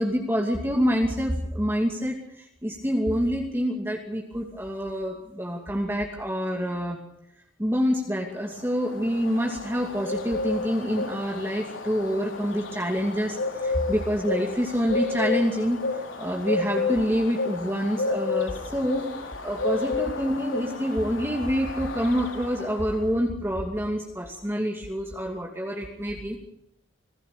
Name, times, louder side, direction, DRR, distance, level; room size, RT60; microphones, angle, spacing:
voice 1, 0.0-7.0 7.6-15.8 16.2-19.1 19.4-26.4, equal, 10° right, 1 dB, 2.6 m, -27 dB
Bird, 8.4-23.1, left 3 dB, 85° left, 4.0 m, -31 dB
26.5 x 17.5 x 6.8 m, 0.77 s
head